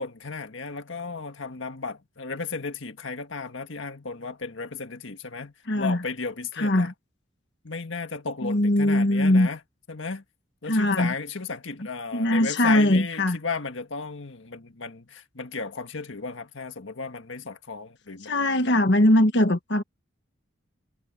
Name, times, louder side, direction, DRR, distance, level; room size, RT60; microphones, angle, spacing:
voice 1, 0.0-6.9 7.6-9.6 9.9-10.2 10.6-18.4, left 4 dB, 80° left, 1.6 m, -34 dB
voice 2, 5.7-6.0 6.6-6.9 8.4-9.5 10.7-11.1 12.1-13.4 18.2-19.8, left 1 dB, 60° left, 1.6 m, -21 dB
head